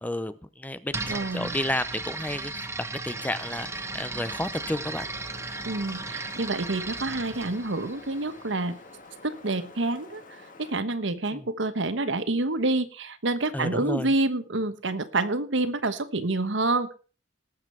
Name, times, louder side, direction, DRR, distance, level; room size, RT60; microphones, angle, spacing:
voice 1, 0.0-2.7 3.0-5.1 11.3-11.5 13.5-14.1, left 1 dB, 10° left, 14 dB, 0.7 m, -32 dB
sound 1, 0.9-8.7, right 3 dB, 15° right, 1.1 m, -36 dB
voice 2, 1.0-1.6 5.6-8.8 9.2-10.2 10.6-16.9, right 2 dB, 85° right, 11 dB, 1.2 m, -28 dB
Wind, 3.1-10.7, left 3 dB, 45° left, 2.0 m, -48 dB
18.5 x 7.4 x 4.5 m, 0.37 s
head